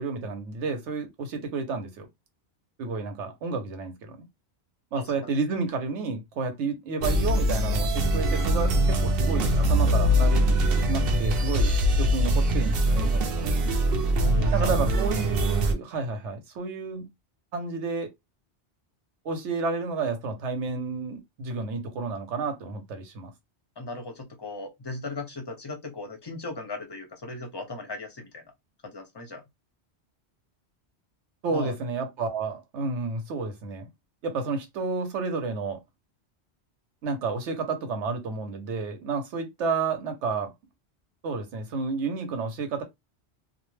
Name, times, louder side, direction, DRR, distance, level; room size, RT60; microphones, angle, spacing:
voice 1, 0.0-2.1 2.8-4.3 4.9-10.5 10.9-13.4 14.5-17.1 17.5-18.1 19.2-23.3 31.4-33.9 34.2-35.8 37.0-40.5 41.2-42.8, right 4 dB, 85° right, 1.0 m, -31 dB
voice 2, 4.9-5.3 14.2-14.7 23.8-28.4 28.8-29.4 31.5-31.7, left 3 dB, 30° left, 0.5 m, -37 dB
sound 1, 7.0-15.7, equal, 65° right, 0.7 m, -23 dB
2.5 x 2.1 x 3.1 m
omnidirectional pair, 1.2 m